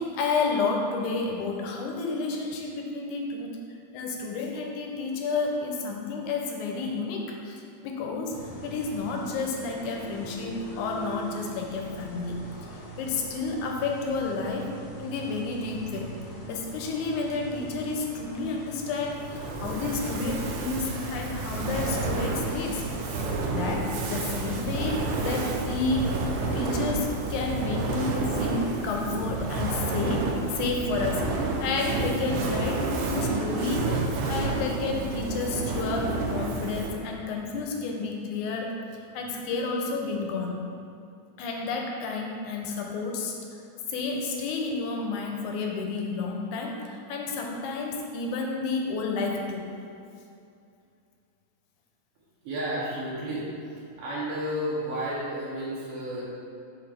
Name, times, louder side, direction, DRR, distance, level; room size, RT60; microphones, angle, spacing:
voice 1, 0.0-3.6 3.9-8.4 8.6-12.4 13.0-14.7 15.0-16.1 16.5-22.8 23.2-26.1 26.5-31.3 31.6-33.9 34.3-38.8 39.1-40.7 41.4-43.4 43.9-49.7, left 3 dB, 85° left, 1 dB, 2.1 m, -31 dB
sound 1, 8.3-27.0, right 1 dB, 65° left, 1.4 m, -42 dB
Fire, 19.1-37.1, right 3 dB, 85° right, 2.2 m, -30 dB
voice 2, 52.4-56.3, equal, 65° right, -7 dB, 1.6 m, -32 dB
6.0 x 5.6 x 3.3 m, 2.5 s
omnidirectional pair, 3.6 m